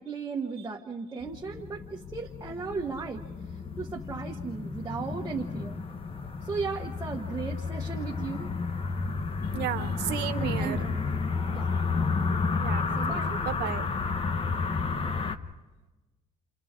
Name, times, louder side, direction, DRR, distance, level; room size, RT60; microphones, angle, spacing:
voice 1, 0.0-3.2 3.8-5.8 6.4-8.5 10.3-11.0 11.5-11.7 13.0-13.3, right 5 dB, 20° right, -2 dB, 1.3 m, -36 dB
sound 1, 1.2-15.4, left 4 dB, 35° left, 1.0 m, -31 dB
voice 2, 9.5-10.8 12.6-13.9, right 12 dB, 80° right, 9 dB, 0.9 m, -34 dB
30.0 x 28.0 x 3.7 m, 1.2 s
cardioid pair, 110°, 17 cm